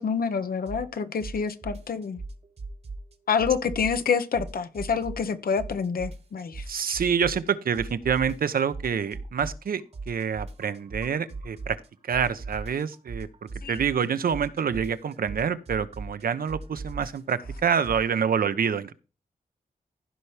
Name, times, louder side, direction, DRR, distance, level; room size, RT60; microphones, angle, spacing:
voice 1, 0.0-2.2 3.3-7.0 13.6-13.8, left 6 dB, 85° left, 1.1 m, -27 dB
sound 1, 0.7-0.9 1.2-3.1 3.4-5.3 5.6-7.5 7.7-11.9 12.1-18.0, right 3 dB, 45° right, 1.3 m, -38 dB
voice 2, 6.7-11.8 12.1-13.3 13.7-18.9, right 7 dB, 80° right, 0.8 m, -27 dB
15.5 x 5.8 x 3.4 m
wide cardioid pair, 140°, 15 cm